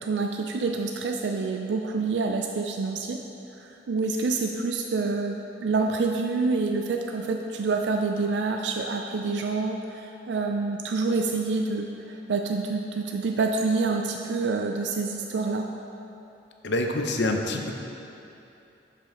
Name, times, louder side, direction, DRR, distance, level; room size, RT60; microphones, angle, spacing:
voice 1, 0.0-3.2 3.6-15.7, right 3 dB, 80° right, 3 dB, 0.4 m, -27 dB
voice 2, 16.6-17.7, left 2 dB, 80° left, 3 dB, 0.7 m, -26 dB
11.5 x 5.2 x 3.7 m, 2.8 s
head